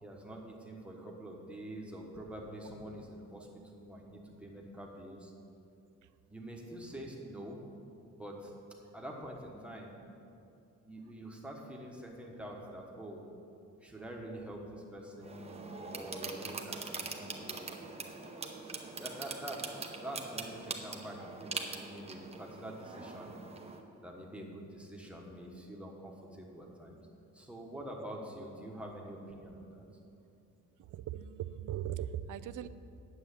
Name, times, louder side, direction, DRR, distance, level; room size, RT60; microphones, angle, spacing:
voice 1, 0.0-5.3 6.3-7.6 8.2-8.5 8.9-9.9 10.8-13.2 13.8-17.6 19.0-23.3 24.0-27.0 27.3-29.8, right 1 dB, 5° right, -1 dB, 1.2 m, -46 dB
sound 1, 15.2-23.8, right 4 dB, 20° right, 0.7 m, -43 dB
voice 2, 30.8-32.7, right 11 dB, 85° right, 14 dB, 0.5 m, -39 dB
9.4 x 7.0 x 8.3 m, 2.6 s
wide cardioid pair, 180°, 30 cm